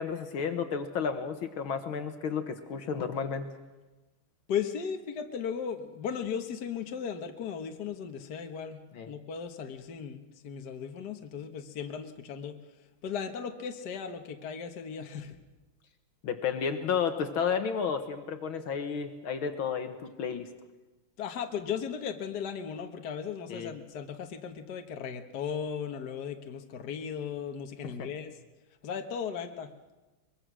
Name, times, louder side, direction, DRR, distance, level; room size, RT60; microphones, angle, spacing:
voice 1, 0.0-3.5 8.9-9.1 16.2-20.5 23.5-23.7 27.8-28.1, left 6 dB, 70° left, 8 dB, 2.0 m, -32 dB
voice 2, 4.5-8.8 9.1-12.6 13.0-15.4 21.2-28.3 28.8-29.7, left 7 dB, 50° left, 6 dB, 1.7 m, -36 dB
23.5 x 22.0 x 6.2 m, 1.1 s
omnidirectional pair, 2.4 m